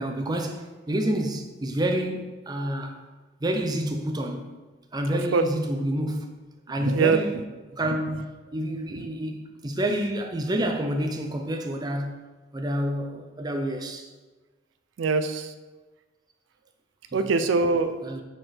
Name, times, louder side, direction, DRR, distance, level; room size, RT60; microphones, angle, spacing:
voice 1, 0.0-3.0 3.4-4.5 4.9-7.4 7.7-12.2 12.5-14.1 17.1-17.3 18.0-18.2, right 1 dB, 20° right, 0.5 m, -28 dB
voice 2, 6.8-7.2 9.0-9.1 15.0-15.5 17.1-18.0, right 4 dB, 80° right, 0.4 m, -23 dB
4.7 x 4.6 x 4.3 m
head